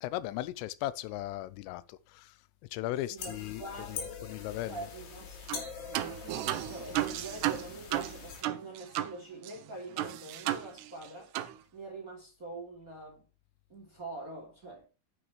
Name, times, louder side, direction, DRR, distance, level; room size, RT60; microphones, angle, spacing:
voice 1, 0.0-2.3 2.7-4.9, left 15 dB, 85° left, 3.3 m, -37 dB
voice 2, 3.1-5.4 5.9-11.3 11.7-13.3 13.7-14.9, right 2 dB, 20° right, 2.5 m, -45 dB
sound 1, 3.2-8.4, left 6 dB, 70° left, 4.8 m, -44 dB
sound 2, 5.5-5.7 5.9-9.2 9.4-9.5 10.0-11.1 11.3-11.5, right 14 dB, 80° right, 2.4 m, -33 dB
10.0 x 9.1 x 3.3 m
omnidirectional pair, 5.8 m